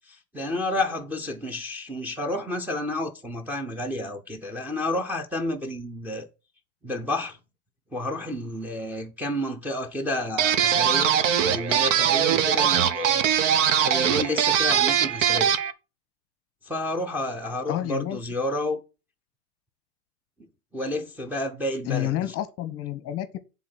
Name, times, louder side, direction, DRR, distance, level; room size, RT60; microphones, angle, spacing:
voice 1, 0.1-6.3 6.8-7.4 7.9-11.2 11.4-13.3 13.8-15.5 16.7-18.8 20.7-22.3, left 1 dB, 5° right, 0.9 m, -30 dB
sound 1, 10.4-15.7, right 8 dB, 55° right, 1.1 m, -21 dB
voice 2, 17.7-18.2 21.9-23.4, left 13 dB, 30° left, 1.0 m, -29 dB
9.7 x 4.0 x 5.9 m
hypercardioid pair, 120°, 45 cm